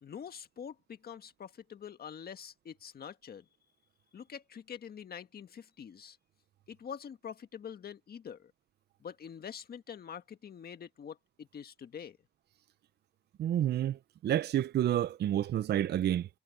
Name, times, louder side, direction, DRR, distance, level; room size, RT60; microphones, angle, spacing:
voice 1, 0.0-3.4 4.1-6.2 6.7-8.5 9.0-12.2, left 8 dB, 50° left, 1.7 m, -45 dB
voice 2, 13.4-16.3, right 11 dB, 55° right, 0.5 m, -29 dB
cardioid pair, 90°, 20 cm